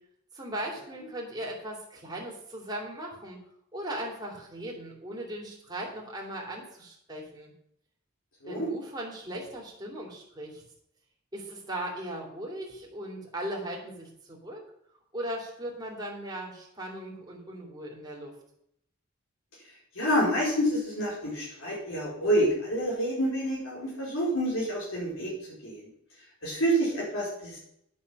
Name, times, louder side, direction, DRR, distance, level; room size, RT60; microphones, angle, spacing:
voice 1, 0.3-3.4 3.7-7.5 8.5-10.6 11.3-14.6 15.1-18.3, right 1 dB, 20° right, -2 dB, 3.1 m, -38 dB
voice 2, 19.9-25.3 25.6-25.8 26.4-27.6, equal, 85° left, -5 dB, 4.5 m, -28 dB
10.5 x 8.3 x 5.6 m, 0.73 s
head